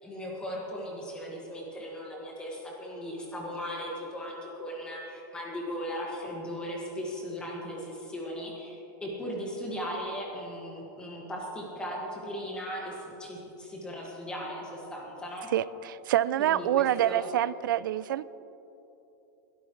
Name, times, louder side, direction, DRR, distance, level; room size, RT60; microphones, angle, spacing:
voice 1, 0.0-15.5 16.4-17.3, equal, 10° left, -2 dB, 2.0 m, -37 dB
voice 2, 15.5-18.2, right 12 dB, 85° right, 18 dB, 0.4 m, -26 dB
22.5 x 12.5 x 3.3 m, 3.0 s
supercardioid pair, 175°, 11 cm